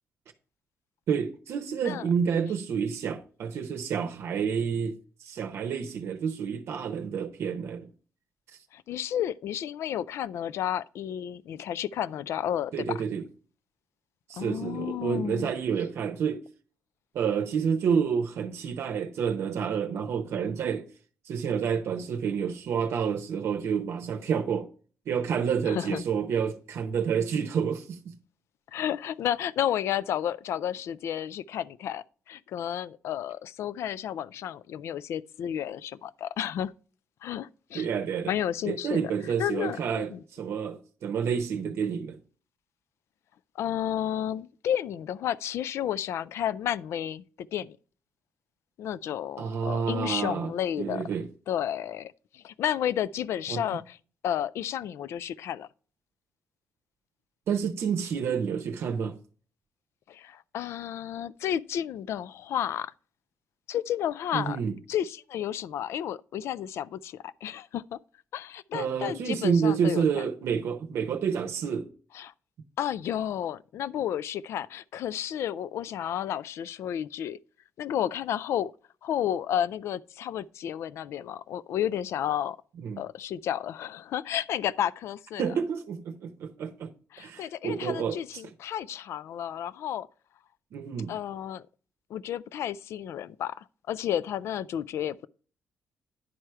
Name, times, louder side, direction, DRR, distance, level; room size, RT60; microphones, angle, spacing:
voice 1, 1.1-7.9 12.7-13.2 14.3-16.4 17.1-20.9 21.3-24.7 25.1-28.1 37.7-38.3 38.7-42.2 49.4-50.5 50.8-51.3 53.5-53.6 57.5-59.2 64.3-64.8 68.7-71.9 82.8-83.0 85.4-86.9 87.2-88.4 90.7-91.1, right 7 dB, 70° right, 0.7 m, -29 dB
voice 2, 8.7-13.0 14.4-15.5 25.7-26.0 28.7-36.7 37.2-37.9 38.3-39.1 39.4-39.8 40.1-40.2 43.6-47.8 48.8-51.0 51.5-54.0 54.2-55.7 60.1-62.9 63.7-64.6 64.9-68.0 68.3-70.2 72.1-72.3 72.8-77.4 77.8-78.7 79.0-82.6 83.0-85.4 87.1-90.1 91.1-91.7 92.1-95.3, left 10 dB, 75° left, 0.4 m, -32 dB
10.0 x 4.8 x 4.4 m
cardioid pair, 140°, 5 cm